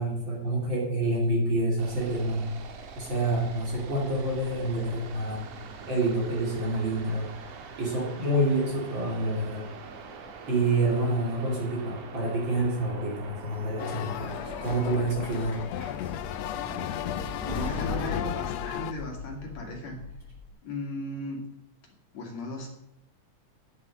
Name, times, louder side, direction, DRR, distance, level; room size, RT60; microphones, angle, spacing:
voice 1, 0.0-2.5 3.0-5.5 5.9-7.3 7.8-9.7 10.5-15.6, right 1 dB, 40° right, -2 dB, 3.3 m, -28 dB
sound 1, 1.8-15.3, right 4 dB, 80° right, 2.8 m, -44 dB
sound 2, 13.3-20.5, left 3 dB, 30° left, 3.8 m, -39 dB
sound 3, 13.8-18.9, left 12 dB, 85° left, 1.4 m, -35 dB
voice 2, 17.4-20.0 20.6-21.4 22.1-22.7, left 2 dB, 60° left, 1 dB, 3.1 m, -36 dB
9.3 x 7.5 x 6.1 m, 0.86 s
omnidirectional pair, 3.6 m